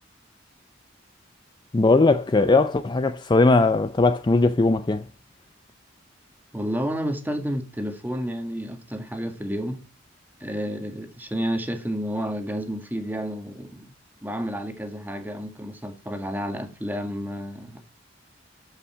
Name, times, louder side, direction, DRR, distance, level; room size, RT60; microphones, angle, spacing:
voice 1, 1.7-5.0, left 3 dB, 25° left, 0.4 m, -19 dB
voice 2, 6.5-9.8 10.4-13.9 14.2-17.8, equal, 10° right, 1.7 m, -30 dB
13.5 x 5.7 x 5.6 m
head